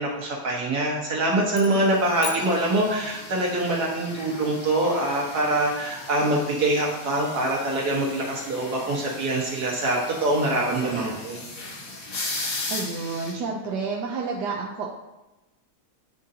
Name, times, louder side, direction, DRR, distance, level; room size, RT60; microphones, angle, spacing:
voice 1, 0.0-11.4, right 1 dB, 75° right, -3 dB, 2.0 m, -24 dB
sound 1, 1.5-3.4, left 6 dB, 60° left, 0.6 m, -39 dB
sound 2, 1.7-13.3, left 2 dB, 80° left, 1.9 m, -38 dB
voice 2, 12.7-14.9, right 4 dB, 90° right, -1 dB, 1.3 m, -30 dB
10.0 x 3.8 x 2.8 m, 1.0 s
omnidirectional pair, 1.7 m